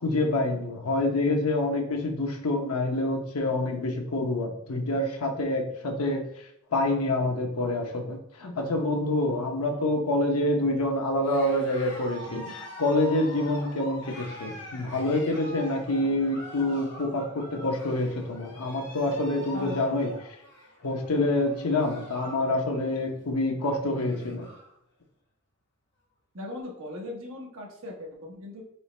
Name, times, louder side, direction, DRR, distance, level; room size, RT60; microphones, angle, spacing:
voice 1, 0.0-6.2 6.7-20.1 20.8-24.5, left 2 dB, 90° left, 2 dB, 0.9 m, -27 dB
Cheering, 11.2-22.5 22.8-23.2 23.6-23.7 23.9-24.7, left 1 dB, 55° left, 1.3 m, -44 dB
voice 2, 26.3-28.6, left 2 dB, 70° right, 0 dB, 1.1 m, -38 dB
4.5 x 3.2 x 3.3 m, 0.75 s
head